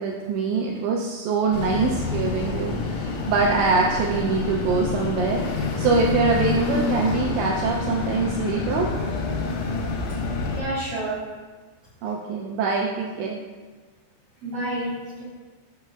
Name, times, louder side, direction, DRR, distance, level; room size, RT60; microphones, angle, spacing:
voice 1, 0.0-8.9 12.0-13.4, right 4 dB, 85° right, -1 dB, 2.6 m, -24 dB
sound 1, 1.5-10.6, left 4 dB, 85° left, 3.5 m, -27 dB
voice 2, 10.5-11.2 14.4-15.2, right 1 dB, 60° right, -9 dB, 2.2 m, -29 dB
10.0 x 6.7 x 2.3 m, 1.4 s
omnidirectional pair, 5.4 m